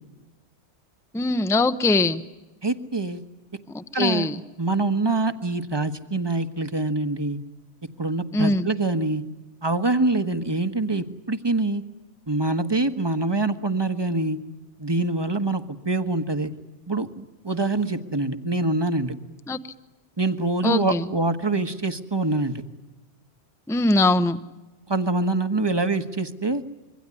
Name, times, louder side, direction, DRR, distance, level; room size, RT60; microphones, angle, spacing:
voice 1, 1.1-2.2 3.7-4.4 8.3-8.7 19.5-19.6 20.6-21.0 23.7-24.4, left 2 dB, 5° left, 11 dB, 0.8 m, -22 dB
voice 2, 2.6-3.2 3.9-4.3 4.6-7.4 8.0-9.2 9.6-11.8 12.3-14.4 14.8-16.5 16.9-19.1 20.2-22.6 24.9-26.6, right 2 dB, 20° right, 10 dB, 1.4 m, -25 dB
26.5 x 23.0 x 9.8 m, 1.1 s
omnidirectional pair, 1.2 m